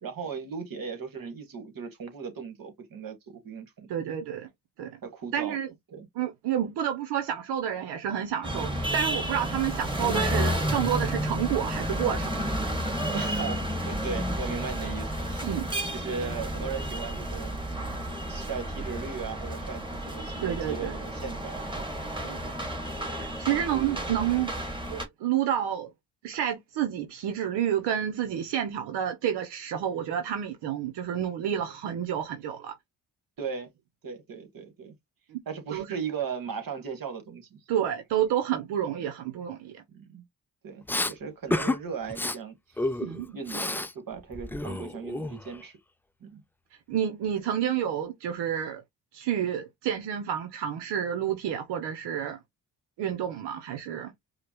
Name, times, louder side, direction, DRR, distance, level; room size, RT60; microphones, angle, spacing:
voice 1, 0.0-3.9 5.0-5.6 5.9-6.1 9.5-9.7 13.1-15.6 15.9-18.0 18.3-22.2 23.5-24.0 33.4-33.7 34.0-34.9 35.4-37.6 39.9-40.2 40.6-42.9 43.3-45.8 46.2-46.4, right 6 dB, 60° right, 1.7 m, -38 dB
voice 2, 3.9-4.5 4.8-5.0 5.3-5.7 6.2-12.3 15.4-15.7 20.4-20.9 22.2-22.5 23.2-24.5 24.9-25.9 26.2-32.7 35.3-35.4 35.7-35.9 37.7-39.8 43.0-43.3 46.9-48.8 49.1-52.4 53.0-54.1, right 10 dB, 85° right, 0.8 m, -29 dB
sound 1, 8.4-25.1, right 1 dB, 10° right, 1.7 m, -31 dB
Respiratory sounds, 40.9-41.1 41.5-41.8 42.1-42.4 42.8-43.9 44.2-45.6, left 2 dB, 5° left, 0.3 m, -30 dB
4.9 x 2.2 x 3.0 m
supercardioid pair, 60°, 39 cm